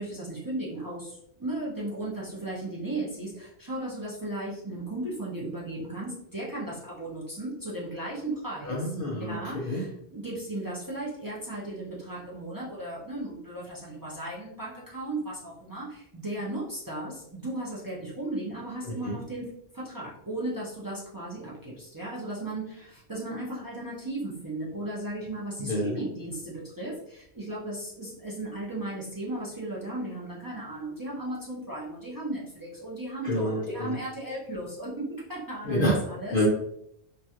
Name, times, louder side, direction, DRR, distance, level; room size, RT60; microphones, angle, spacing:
voice 1, 0.0-8.9 9.3-19.5 19.7-36.4, right 1 dB, 30° right, -7 dB, 0.4 m, -36 dB
voice 2, 8.6-9.8 18.8-19.2 25.6-26.0 33.2-33.9 35.6-36.0 36.3-36.5, left 1 dB, 50° left, -5 dB, 0.7 m, -28 dB
3.1 x 2.4 x 2.8 m, 0.74 s
omnidirectional pair, 1.5 m